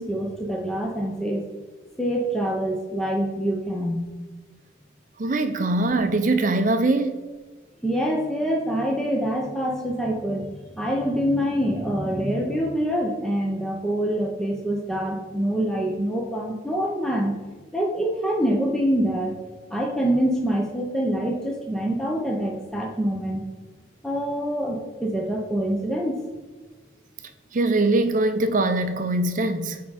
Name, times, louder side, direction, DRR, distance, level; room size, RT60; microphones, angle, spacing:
voice 1, 0.0-1.4 2.0-4.1 7.8-17.3 17.7-19.3 19.7-23.4 24.0-26.2, equal, 5° left, -1 dB, 0.7 m, -25 dB
voice 2, 5.2-7.2 27.5-29.8, right 2 dB, 40° right, 9 dB, 0.6 m, -22 dB
9.3 x 3.7 x 4.1 m, 1.3 s
head